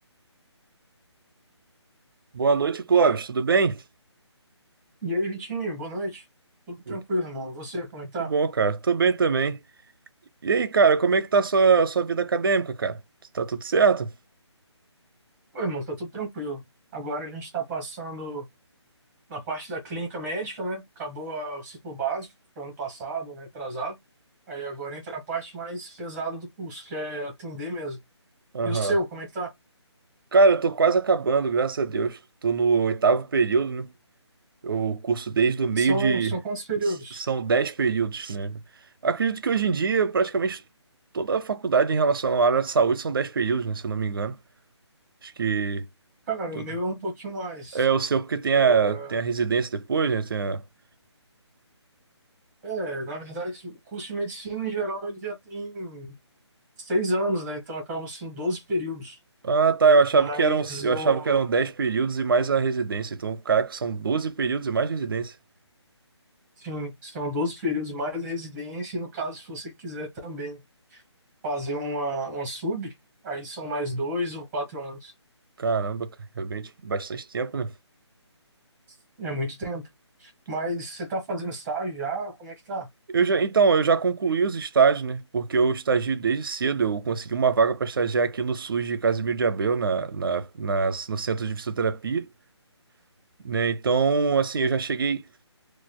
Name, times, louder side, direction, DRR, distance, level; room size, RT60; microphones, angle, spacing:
voice 1, 2.3-3.8 6.9-7.0 8.2-9.6 10.4-13.0 13.3-14.1 28.5-28.9 30.3-33.9 34.6-36.3 37.3-38.6 39.0-40.6 41.1-44.4 45.2-45.9 46.5-46.6 47.7-50.6 59.4-65.3 75.6-76.1 76.4-77.7 83.1-92.3 93.4-95.2, right 5 dB, 50° right, 0.5 m, -23 dB
voice 2, 5.0-6.2 6.7-8.3 15.5-16.6 16.9-18.4 19.3-22.3 22.5-23.9 24.5-28.0 28.6-29.5 35.8-37.2 46.3-47.9 48.5-49.2 52.6-56.1 56.8-59.2 60.1-61.4 66.6-70.6 70.9-71.0 71.4-72.9 73.2-75.1 79.2-79.8 80.2-82.9, right 1 dB, 10° right, 1.2 m, -31 dB
6.1 x 2.4 x 2.2 m
hypercardioid pair, 170°, 15 cm